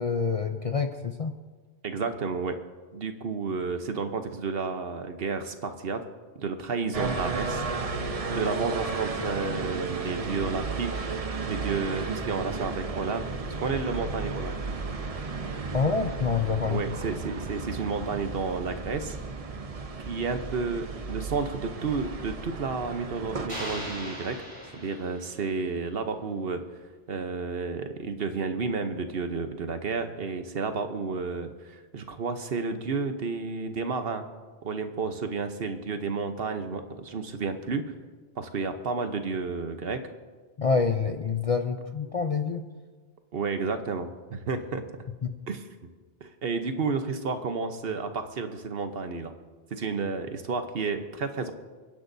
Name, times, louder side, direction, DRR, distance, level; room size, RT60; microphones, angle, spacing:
voice 1, 0.0-1.3 15.7-16.8 40.6-42.6 45.2-45.3, left 5 dB, 45° left, 6 dB, 0.5 m, -27 dB
voice 2, 1.8-2.6 2.9-6.0 6.4-7.6 8.3-11.0 11.5-14.6 16.7-19.2 20.1-24.4 24.7-26.6 27.1-34.3 34.6-37.9 38.4-40.0 43.3-44.8 45.5-45.7 46.2-49.3 49.7-51.5, right 4 dB, 60° right, 8 dB, 1.1 m, -31 dB
sound 1, 6.9-23.5, right 4 dB, 35° right, 0.8 m, -34 dB
sound 2, 23.5-25.6, equal, 20° right, 4.4 m, -39 dB
29.0 x 10.5 x 2.7 m, 1.4 s
omnidirectional pair, 1.2 m